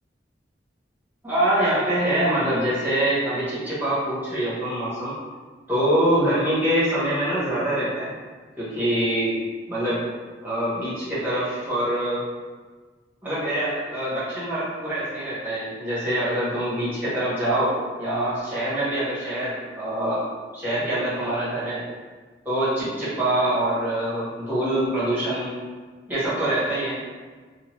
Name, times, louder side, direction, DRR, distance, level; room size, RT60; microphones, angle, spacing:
voice 1, 1.2-5.1 5.7-8.1 8.6-9.4 9.7-10.0 10.4-12.2 13.2-20.2 20.5-21.8 22.4-25.5 26.1-27.0, right 1 dB, 10° right, -10 dB, 1.1 m, -24 dB
2.8 x 2.3 x 3.0 m, 1.4 s
head